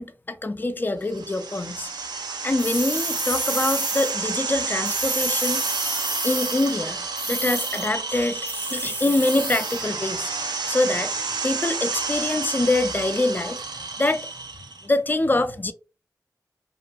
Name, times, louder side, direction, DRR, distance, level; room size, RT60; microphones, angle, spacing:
voice 1, 0.0-1.9 2.4-5.6 6.2-10.3 10.7-11.1 11.4-13.6 14.0-14.3 14.8-15.7, left 2 dB, 25° left, 0.4 m, -25 dB
sound 1, 1.1-14.9, right 4 dB, 85° right, 0.4 m, -30 dB
sound 2, 2.6-4.1 4.8-6.7 7.2-7.9 8.5-9.8, right 1 dB, 25° right, 0.6 m, -30 dB
2.3 x 2.2 x 2.5 m
cardioid pair, 40°, 7 cm